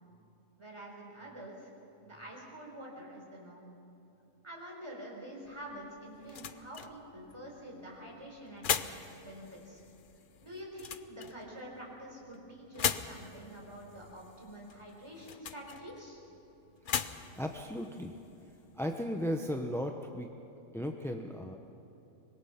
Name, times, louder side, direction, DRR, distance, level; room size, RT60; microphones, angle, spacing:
voice 1, 0.6-1.7 2.0-3.7 4.4-8.9 9.2-9.8 10.4-16.2, right 1 dB, 20° right, -2 dB, 4.2 m, -47 dB
sound 1, 5.4-18.9, left 8 dB, 55° left, 0.6 m, -41 dB
voice 2, 16.8-18.1 18.4-20.3 20.7-21.6, equal, 5° left, 4 dB, 0.6 m, -36 dB
25.0 x 21.5 x 5.8 m, 2.9 s
omnidirectional pair, 1.6 m